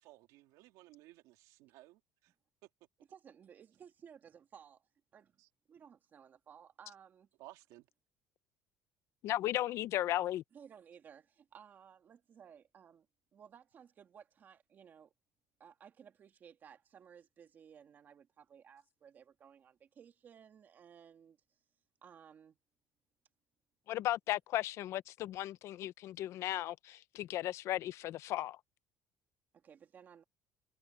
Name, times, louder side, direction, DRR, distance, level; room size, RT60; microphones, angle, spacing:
voice 1, 0.0-2.3 5.4-5.5 7.4-7.9, right 18 dB, 80° right, 2.7 m, -58 dB
voice 2, 3.1-5.4 5.7-7.3 10.5-13.1 13.3-15.1 15.6-21.4 22.0-22.6 29.5-30.2, right 8 dB, 30° right, 2.3 m, -58 dB
voice 3, 9.2-10.4 23.9-28.6, left 14 dB, 55° left, 0.5 m, -36 dB
cardioid pair, 165°, 6 cm